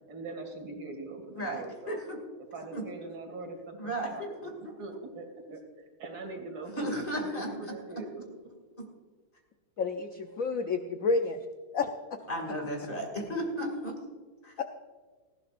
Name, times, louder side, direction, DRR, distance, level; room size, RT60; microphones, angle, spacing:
voice 1, 0.1-2.0 2.4-4.5 4.8-8.2 12.1-12.2 13.0-13.1, right 2 dB, 70° right, 2 dB, 3.2 m, -42 dB
voice 2, 1.4-2.2 2.7-2.8 3.8-4.7 6.8-7.5 8.8-8.9 12.3-14.0 14.4-14.5, right 1 dB, 25° left, 2 dB, 2.4 m, -34 dB
voice 3, 9.8-11.5 11.7-11.9 14.6-14.7, left 4 dB, 70° left, 6 dB, 0.8 m, -29 dB
18.5 x 15.0 x 2.5 m, 1.5 s
omnidirectional pair, 2.3 m